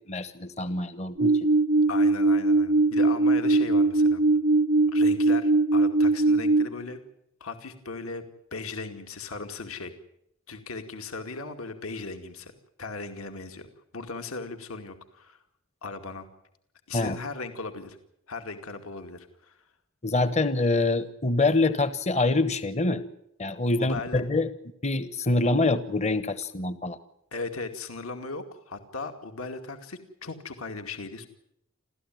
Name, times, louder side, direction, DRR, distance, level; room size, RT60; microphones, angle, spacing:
voice 1, 0.1-1.5 16.9-17.2 20.0-23.0 23.4-24.5 24.8-27.0, left 2 dB, 30° left, 13 dB, 1.1 m, -25 dB
sound 1, 1.2-6.7, right 2 dB, 55° right, 0.8 m, -21 dB
voice 2, 1.9-4.2 4.9-7.0 7.4-8.2 8.5-9.9 10.5-12.5 12.8-13.7 13.9-15.4 15.8-16.3 16.9-18.0 18.3-19.6 23.8-24.2 27.3-31.3, left 3 dB, 75° left, 6 dB, 2.4 m, -37 dB
29.0 x 14.0 x 9.3 m, 0.78 s
head